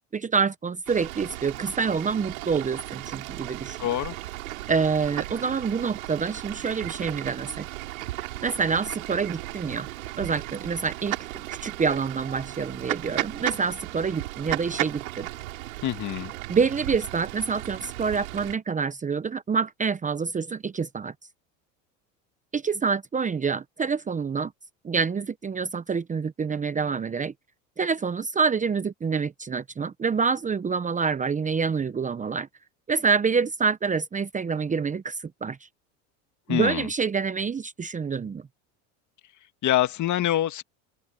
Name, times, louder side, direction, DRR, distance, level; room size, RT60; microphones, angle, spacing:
voice 1, 0.1-3.8 4.7-7.7 8.4-9.9 10.2-11.2 11.6-15.3 16.5-21.1 22.5-24.5 24.8-27.3 27.8-32.5 32.9-35.7 36.5-38.4, right 5 dB, 20° right, 0.9 m, -27 dB
Fowl / Bird, 0.9-18.5, right 17 dB, 90° right, 4.9 m, -35 dB
voice 2, 3.8-4.2 15.8-16.3 36.5-36.9 39.6-40.6, left 12 dB, 45° left, 2.1 m, -25 dB
open air
supercardioid pair, 100°, 40 cm